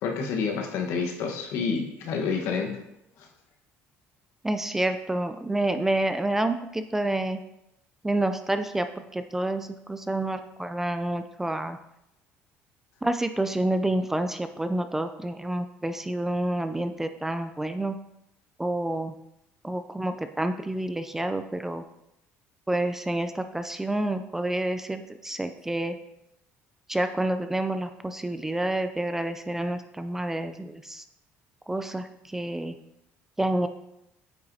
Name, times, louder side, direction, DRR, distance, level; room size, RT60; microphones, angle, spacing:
voice 1, 0.0-2.7 3.2-3.3, left 5 dB, 70° left, 3 dB, 1.2 m, -28 dB
voice 2, 4.4-7.4 8.0-11.8 13.0-18.0 18.6-19.1 19.6-21.8 22.7-25.9 26.9-31.0 31.7-32.7 33.4-33.7, right 1 dB, 10° right, 8 dB, 0.3 m, -28 dB
8.8 x 5.5 x 2.7 m, 0.84 s
cardioid pair, 140°, 5 cm